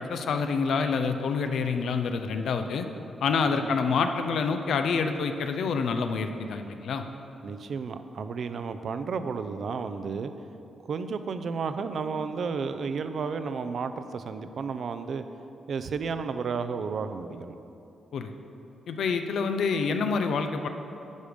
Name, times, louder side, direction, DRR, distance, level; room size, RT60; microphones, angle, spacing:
voice 1, 0.0-2.9 3.2-7.0 18.1-18.3 18.9-20.7, left 5 dB, 75° left, 7 dB, 0.5 m, -27 dB
voice 2, 7.4-10.3 10.9-15.2 15.7-17.5, right 5 dB, 65° right, 10 dB, 0.5 m, -32 dB
10.5 x 5.0 x 5.1 m, 2.9 s
cardioid pair, 80°, 0 cm